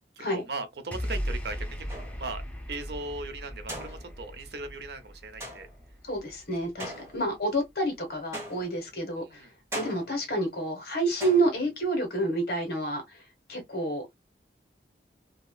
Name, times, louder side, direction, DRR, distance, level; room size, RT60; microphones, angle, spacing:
voice 1, 0.2-2.4 2.7-5.7 9.2-9.5, right 3 dB, 65° right, 0.8 m, -38 dB
sound 1, 0.9-7.3, equal, 10° left, 0.7 m, -38 dB
sound 2, 1.9-2.4 3.7-4.4 5.4-5.9 6.8-7.5 8.3-9.0 9.7-10.3 11.2-11.9, right 1 dB, 15° right, 1.4 m, -41 dB
voice 2, 6.0-9.4 9.7-13.2 13.5-14.1, right 1 dB, 60° left, 1.5 m, -29 dB
2.9 x 2.9 x 2.3 m
head